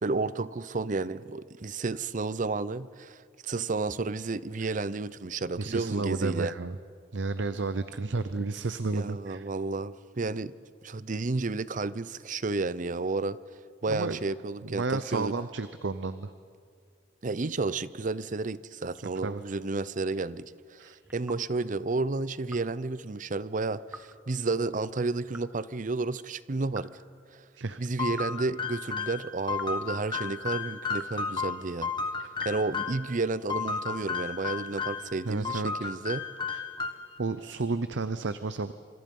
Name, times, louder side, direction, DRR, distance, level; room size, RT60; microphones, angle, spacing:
voice 1, 0.0-6.5 8.9-10.5 10.8-13.4 13.8-15.3 17.2-26.9 27.3-27.4 27.8-31.9 32.4-36.2, right 3 dB, 45° right, 17 dB, 0.6 m, -31 dB
voice 2, 5.6-6.8 7.1-9.4 13.9-14.2 14.6-16.3 19.2-19.4 20.8-21.0 27.6-27.8 35.2-35.9 36.5-36.6 37.2-38.7, right 3 dB, 80° right, 12 dB, 0.7 m, -32 dB
sound 1, 21.0-21.5 22.5-22.8 23.9-24.3 25.3-25.7 26.7-27.1 28.1-28.5 29.5-29.9 30.9-31.4 32.4-32.7, right 1 dB, 10° right, 1.2 m, -48 dB
sound 2, 28.0-33.1 33.5-35.1 35.4-37.2, left 5 dB, 25° left, 1.7 m, -33 dB
27.0 x 26.0 x 5.5 m, 2.1 s
head